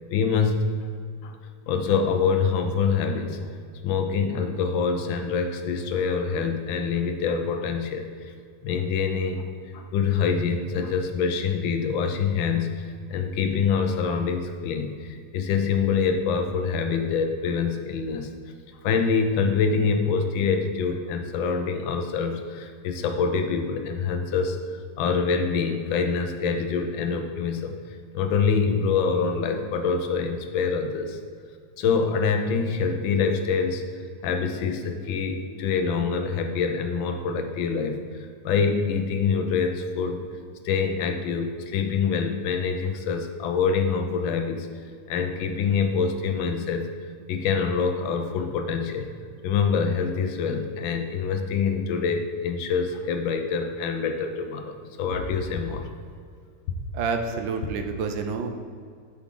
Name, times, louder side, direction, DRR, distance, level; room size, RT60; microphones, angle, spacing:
voice 1, 0.1-0.9 1.2-1.4 1.7-3.5 3.8-8.3 8.6-9.5 9.7-18.3 18.8-24.6 25.0-27.7 28.1-31.2 31.8-33.8 34.2-38.0 38.4-40.2 40.6-44.7 45.1-46.9 47.3-49.1 49.4-55.9, left 5 dB, 85° left, 6 dB, 1.5 m, -25 dB
voice 2, 56.9-58.5, right 5 dB, 85° right, 5 dB, 1.5 m, -28 dB
8.6 x 6.2 x 3.8 m, 2.1 s
omnidirectional pair, 2.0 m